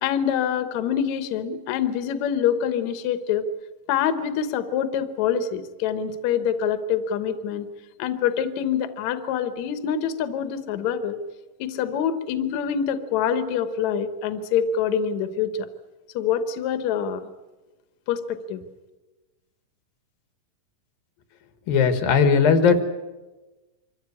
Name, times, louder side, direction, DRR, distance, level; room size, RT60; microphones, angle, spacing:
voice 1, 0.0-3.5 3.9-7.7 8.0-11.2 11.6-15.7 16.1-17.3 18.1-18.2 18.5-18.6, left 8 dB, 65° left, 10 dB, 2.2 m, -25 dB
voice 2, 21.7-22.8, left 5 dB, 85° left, 8 dB, 3.4 m, -18 dB
25.5 x 14.5 x 9.8 m, 1.2 s
omnidirectional pair, 4.0 m